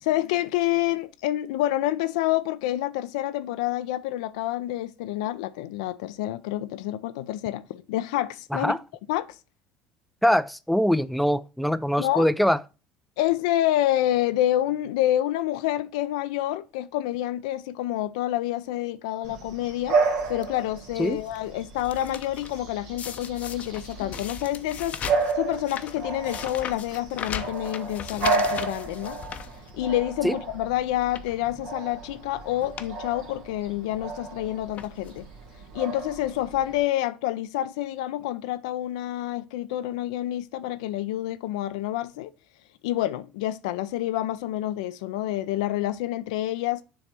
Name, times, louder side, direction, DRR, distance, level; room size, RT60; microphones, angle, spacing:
voice 1, 0.0-8.7 9.1-9.4 12.0-12.3 13.2-20.0 20.3-25.1 25.3-29.2 29.7-35.3 35.5-42.3 42.8-46.8, left 14 dB, 75° left, 0.5 m, -28 dB
voice 2, 10.2-12.6 21.0-21.2 30.2-30.3, equal, ahead, 0.4 m, -22 dB
Bark / Bird vocalization bird call bird song, 19.2-36.8, right 4 dB, 70° right, 1.7 m, -32 dB
sound 1, 20.0-20.4 21.0-21.4 21.6-22.6 23.0-30.1 30.5-30.6 31.0-31.4 32.2-32.3 32.6-32.9 33.2-33.3 34.2-34.4 34.8-35.3 36.0-36.1 36.3-36.4, left 8 dB, 45° left, 0.7 m, -38 dB
7.0 x 3.3 x 5.8 m
hypercardioid pair, 75°, 3 cm